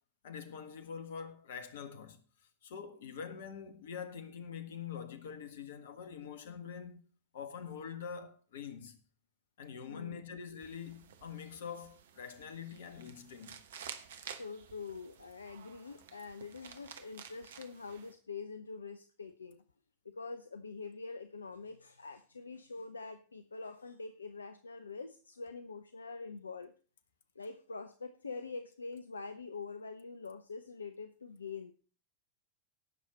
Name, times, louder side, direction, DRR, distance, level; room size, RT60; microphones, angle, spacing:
voice 1, 0.2-2.2 2.6-7.0 7.3-9.0 9.6-13.6, left 7 dB, 60° left, 1.5 m, -45 dB
voice 2, 9.9-10.2 14.2-19.6 20.0-26.7 27.4-31.7, left 4 dB, 75° left, 0.6 m, -45 dB
sound 1, 10.6-18.1, right 8 dB, 60° right, 1.1 m, -52 dB
17.5 x 6.4 x 4.3 m
figure-of-eight pair, 90°, 0 cm